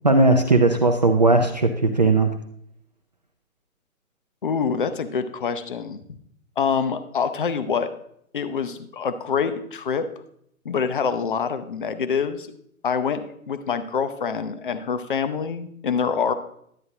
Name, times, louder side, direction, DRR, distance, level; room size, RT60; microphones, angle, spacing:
voice 1, 0.0-2.3, right 2 dB, 30° right, 4 dB, 0.4 m, -18 dB
voice 2, 4.4-6.0 6.6-7.9 8.3-10.1 10.6-12.5 12.8-16.3, left 6 dB, 40° left, 11 dB, 0.6 m, -25 dB
11.0 x 8.5 x 2.9 m, 0.70 s
figure-of-eight pair, 130°, 42 cm